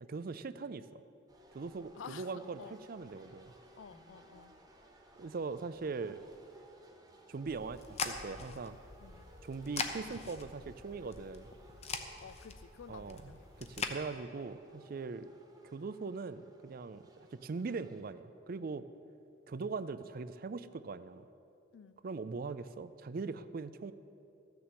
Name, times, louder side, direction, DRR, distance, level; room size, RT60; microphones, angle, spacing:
voice 1, 0.1-1.0 1.5-3.5 5.2-6.2 7.3-8.8 9.4-11.5 12.9-15.3 15.6-18.9 19.5-21.3 22.0-23.9, right 4 dB, 50° right, 14 dB, 0.4 m, -41 dB
sound 1, 1.3-18.0, right 1 dB, 20° right, 1.1 m, -60 dB
voice 2, 1.9-2.8 3.8-4.5 9.0-9.3 12.2-13.5 21.7-22.0, left 7 dB, 75° left, 15 dB, 0.4 m, -51 dB
sound 2, 7.5-14.0, left 4 dB, 35° left, 0.7 m, -42 dB
13.5 x 6.9 x 7.6 m, 2.7 s
head